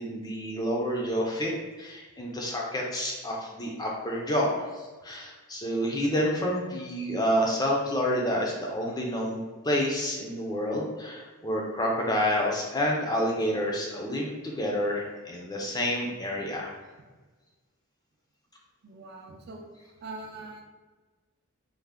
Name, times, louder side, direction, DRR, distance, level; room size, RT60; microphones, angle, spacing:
voice 1, 0.0-1.5 1.8-16.7, equal, 15° left, -1 dB, 0.4 m, -29 dB
voice 2, 18.8-19.7 20.0-20.6, right 3 dB, 45° right, 2 dB, 0.4 m, -42 dB
3.3 x 2.1 x 3.5 m, 1.3 s
head